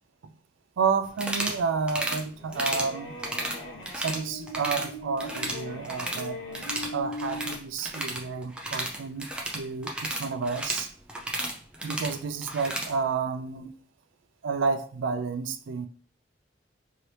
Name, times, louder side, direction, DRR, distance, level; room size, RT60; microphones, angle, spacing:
voice 1, 0.8-3.2 4.0-6.4 6.9-9.3 9.5-10.9 11.8-13.7 14.4-15.9, right 5 dB, 75° right, 10 dB, 0.4 m, -30 dB
sound 1, 1.1-1.6 1.9-2.2 2.5-2.9 3.2-4.2 4.5-4.9 5.2-6.3 6.5-12.9, right 1 dB, 5° right, 0.3 m, -33 dB
sound 2, 2.3-7.6, left 1 dB, 80° left, 0.7 m, -40 dB
2.9 x 2.7 x 3.1 m, 0.42 s
head